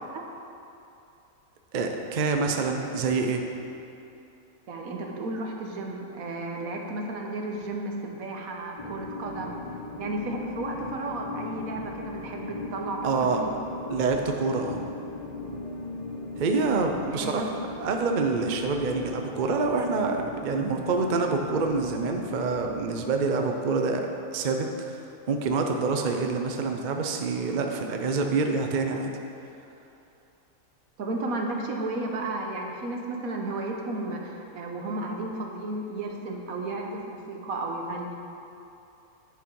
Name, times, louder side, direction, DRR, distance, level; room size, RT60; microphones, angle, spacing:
voice 1, 1.7-3.4 13.0-13.4 13.9-14.8 16.4-17.5 17.8-24.1 24.3-25.0 25.3-29.1, right 4 dB, 45° right, 3 dB, 0.7 m, -26 dB
voice 2, 4.7-9.6 10.0-13.0 13.4-13.5 17.1-17.3 31.0-38.2, right 2 dB, 75° right, 1 dB, 1.5 m, -33 dB
sound 1, 8.8-22.8, left 2 dB, 35° left, 0.8 m, -38 dB
10.5 x 8.2 x 4.7 m, 2.8 s
omnidirectional pair, 1.5 m